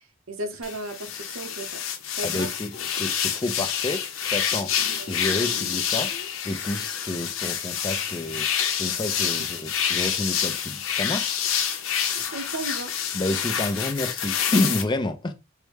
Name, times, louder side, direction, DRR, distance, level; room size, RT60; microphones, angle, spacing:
voice 1, 0.3-1.8 2.2-2.5 4.8-5.1 12.1-12.9, right 1 dB, 90° right, 0.7 m, -35 dB
sound 1, 0.6-14.8, left 8 dB, 85° left, 0.7 m, -27 dB
voice 2, 2.2-4.7 5.1-8.5 8.8-11.4 12.0-12.2 13.1-15.3, left 2 dB, 20° left, 0.4 m, -29 dB
4.5 x 2.1 x 3.2 m
head